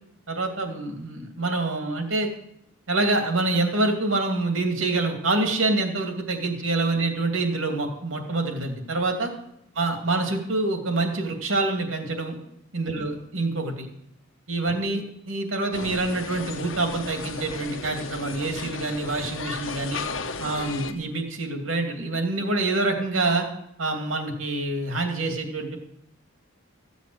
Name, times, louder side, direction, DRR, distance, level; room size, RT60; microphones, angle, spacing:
voice 1, 0.3-2.3 2.9-9.3 9.8-12.4 12.7-13.9 14.5-20.0 20.4-23.5 23.8-25.8, right 2 dB, 75° right, 4 dB, 2.7 m, -26 dB
sound 1, 15.7-20.9, left 4 dB, 70° left, 1.2 m, -35 dB
15.0 x 8.2 x 8.0 m, 0.75 s
head